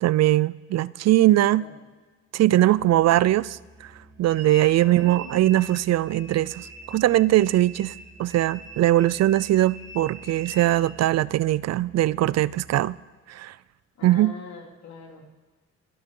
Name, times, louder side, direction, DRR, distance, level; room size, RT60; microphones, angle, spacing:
voice 1, 0.0-1.7 2.3-3.9 4.2-7.9 8.2-13.0 13.3-13.6 14.0-14.3, right 14 dB, 60° right, 0.4 m, -21 dB
voice 2, 1.5-1.8 4.8-5.6 14.0-15.3, left 3 dB, 65° left, 3.7 m, -43 dB
Musical instrument, 2.6-13.0, right 3 dB, 35° right, 2.9 m, -52 dB
sound 1, 4.3-5.8 6.1-10.9, right 2 dB, 10° right, 3.4 m, -43 dB
27.0 x 12.5 x 3.8 m
cardioid pair, 90°, 30 cm